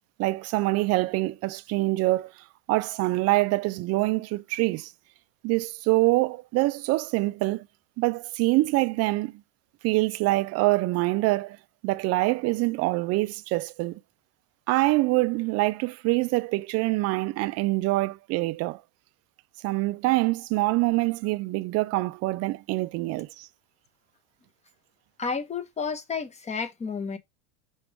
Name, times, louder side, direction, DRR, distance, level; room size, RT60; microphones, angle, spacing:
voice 1, 0.2-2.3 2.7-4.9 5.4-7.7 8.0-9.3 9.8-11.6 11.8-14.0 14.7-18.8 19.6-23.5, right 21 dB, 35° right, 0.5 m, -25 dB
voice 2, 25.2-27.2, left 5 dB, 15° left, 0.9 m, -31 dB
6.3 x 3.4 x 4.6 m
supercardioid pair, 115°, 44 cm